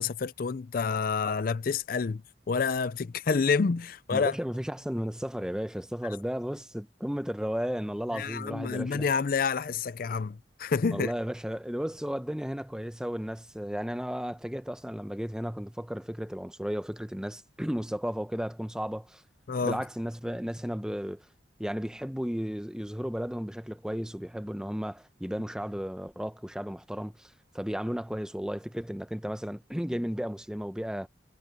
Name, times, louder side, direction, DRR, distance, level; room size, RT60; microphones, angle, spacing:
voice 1, 0.0-2.2 2.5-4.3 8.1-11.1 19.5-19.8, left 5 dB, 50° left, 0.4 m, -28 dB
voice 2, 4.1-9.1 10.9-19.2 19.6-21.2 21.6-31.1, equal, 5° right, 0.8 m, -34 dB
head